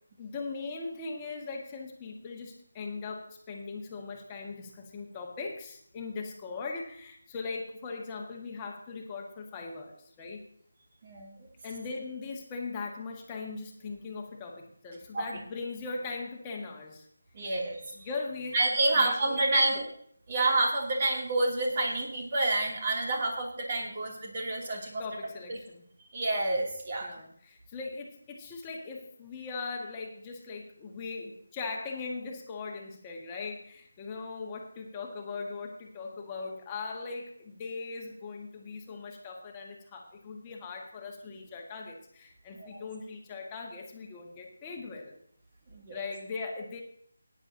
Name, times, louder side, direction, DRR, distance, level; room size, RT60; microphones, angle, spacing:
voice 1, 0.2-10.4 11.6-17.1 18.0-19.9 25.0-25.9 27.0-45.2 45.9-46.8, left 4 dB, 15° left, 0 dB, 1.8 m, -39 dB
voice 2, 11.0-11.5 15.1-15.3 17.3-18.0 18.5-19.8 20.3-25.0 25.5-25.6 26.1-27.2 42.5-42.8 45.7-46.0, right 2 dB, 35° right, 0 dB, 2.9 m, -29 dB
17.0 x 10.0 x 2.8 m, 0.63 s
figure-of-eight pair, 165°, 0 cm